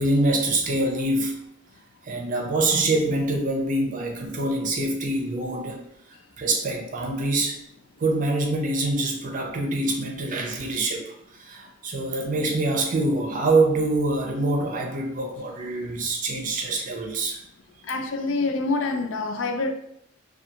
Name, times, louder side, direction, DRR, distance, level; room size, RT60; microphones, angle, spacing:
voice 1, 0.0-1.4 2.0-5.8 6.4-7.6 8.0-17.4, right 2 dB, 45° right, 0.5 m, -25 dB
voice 2, 17.8-19.7, left 3 dB, 80° left, 0.3 m, -26 dB
2.3 x 2.3 x 2.7 m
head